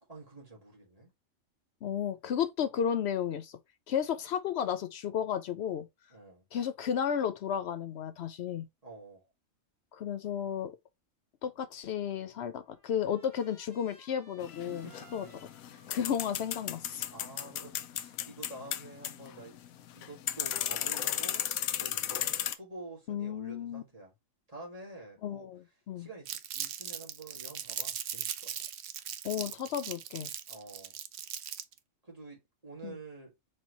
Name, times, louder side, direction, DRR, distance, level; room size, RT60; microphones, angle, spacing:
voice 1, 0.1-1.1 6.1-6.4 8.8-9.3 14.7-15.4 15.9-16.1 17.1-19.6 19.9-24.1 24.5-25.5 26.0-28.6 30.5-30.9 32.0-33.3, right 2 dB, 25° right, 1.7 m, -48 dB
voice 2, 1.8-3.6 3.9-5.9 6.5-8.7 9.9-10.8 11.4-15.3 15.7-17.1 23.1-23.8 25.2-26.1 29.2-30.3 32.8-33.0, left 8 dB, 65° left, 0.7 m, -33 dB
Trumpet, 12.1-18.3, right 2 dB, 45° right, 1.9 m, -62 dB
sound 1, 14.4-22.6, left 11 dB, 85° left, 1.0 m, -35 dB
Crumpling crinkling, 26.3-31.8, right 10 dB, 65° right, 0.7 m, -39 dB
4.3 x 3.1 x 3.9 m
omnidirectional pair, 1.4 m